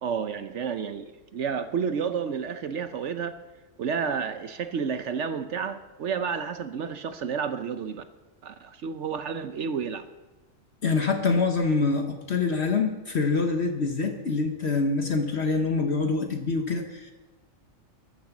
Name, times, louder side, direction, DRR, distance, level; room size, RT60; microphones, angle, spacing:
voice 1, 0.0-3.4 3.8-8.0 8.4-10.1, right 6 dB, 65° right, 10 dB, 1.0 m, -31 dB
voice 2, 10.8-17.1, left 4 dB, 55° left, 4 dB, 1.3 m, -25 dB
12.5 x 10.5 x 7.2 m, 1.2 s
omnidirectional pair, 1.4 m